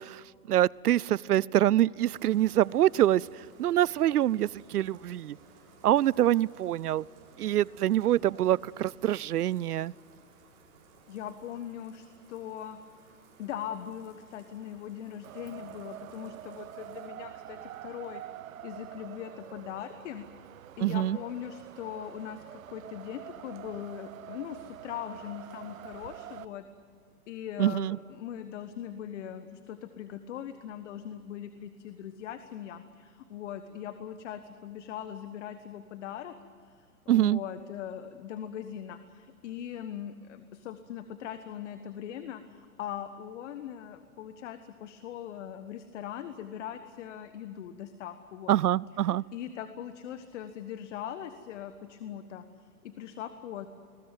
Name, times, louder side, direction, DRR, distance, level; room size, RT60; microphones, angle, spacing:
voice 1, 0.0-5.4 5.8-7.0 7.4-9.9 20.8-21.2 27.6-28.0 37.1-37.4 48.5-49.2, right 12 dB, 80° right, 25 dB, 0.6 m, -25 dB
Bathtub (filling or washing), 2.1-17.1, right 4 dB, 40° right, 7.0 m, -58 dB
voice 2, 11.1-12.8 13.0-18.2 18.6-20.2 20.8-26.6 27.3-36.3 36.6-48.5 49.0-53.7, left 10 dB, 50° left, 10 dB, 1.4 m, -40 dB
Wind, 15.2-26.4, right 12 dB, 60° right, 0.9 m, -46 dB
22.5 x 20.5 x 9.1 m, 2.2 s
hypercardioid pair, 125°, 45 cm